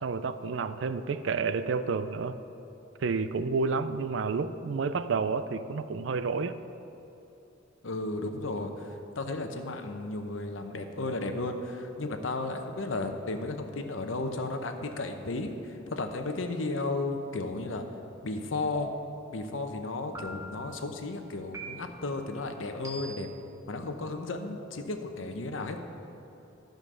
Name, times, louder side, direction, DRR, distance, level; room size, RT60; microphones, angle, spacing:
voice 1, 0.0-2.4 3.0-6.6, right 4 dB, 70° right, 12 dB, 0.4 m, -30 dB
voice 2, 7.8-17.8 18.2-18.9 19.3-23.3 23.7-25.8, left 2 dB, 85° left, 6 dB, 0.8 m, -34 dB
sound 1, 18.7-19.3 20.1-20.7 21.5-22.1 22.8-23.4, right 2 dB, 15° right, 0.9 m, -42 dB
12.0 x 5.2 x 6.2 m, 2.9 s
head